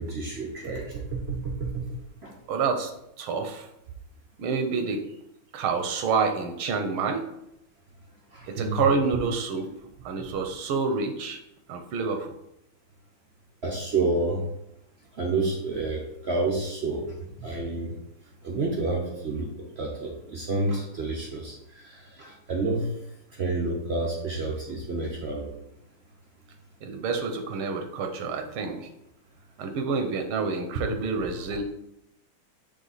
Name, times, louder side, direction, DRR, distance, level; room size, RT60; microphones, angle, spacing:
voice 1, 0.0-1.8 2.2-2.3 8.3-8.8 13.6-14.4 15.2-17.1 17.4-17.9 18.4-19.5 19.8-22.9 23.4-25.5 28.7-28.8, right 3 dB, 70° right, -1 dB, 0.6 m, -29 dB
voice 2, 2.5-2.9 3.2-3.7 4.4-5.0 5.5-7.2 8.5-9.7 10.0-11.4 11.7-12.3 26.8-28.9 29.6-31.6, right 5 dB, 90° right, 6 dB, 1.7 m, -28 dB
7.0 x 3.5 x 4.0 m, 0.80 s
omnidirectional pair, 2.2 m